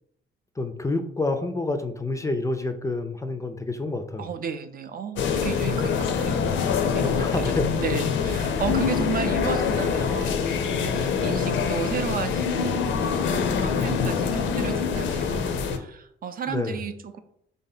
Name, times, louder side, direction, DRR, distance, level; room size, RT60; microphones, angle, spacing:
voice 1, 0.6-4.3 7.2-7.7 8.7-8.8 16.5-16.8, left 2 dB, 15° left, 7 dB, 0.4 m, -28 dB
voice 2, 4.2-17.2, right 7 dB, 45° right, 9 dB, 0.4 m, -34 dB
sound 1, 5.2-15.8, left 6 dB, 70° left, 0.5 m, -25 dB
3.5 x 2.7 x 4.0 m, 0.72 s
cardioid pair, 90°, 20 cm